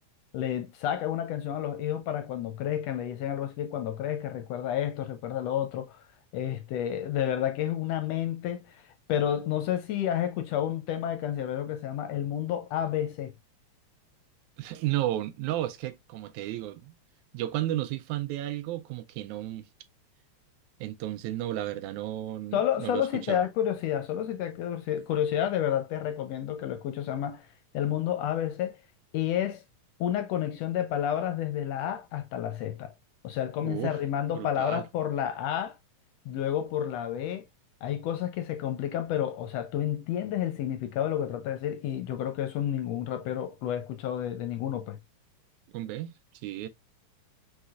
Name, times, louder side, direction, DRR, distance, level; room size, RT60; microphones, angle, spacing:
voice 1, 0.3-6.0 6.3-8.8 9.1-13.3 22.5-27.5 27.7-28.8 29.1-29.6 30.0-32.9 33.2-35.7 36.3-37.4 37.8-45.0, left 10 dB, 75° left, 1.6 m, -30 dB
voice 2, 14.6-17.0 17.3-19.6 20.8-23.4 33.6-34.0 34.3-34.9 45.7-46.1 46.4-46.7, right 14 dB, 90° right, 2.0 m, -33 dB
4.8 x 4.0 x 2.3 m
omnidirectional pair, 3.3 m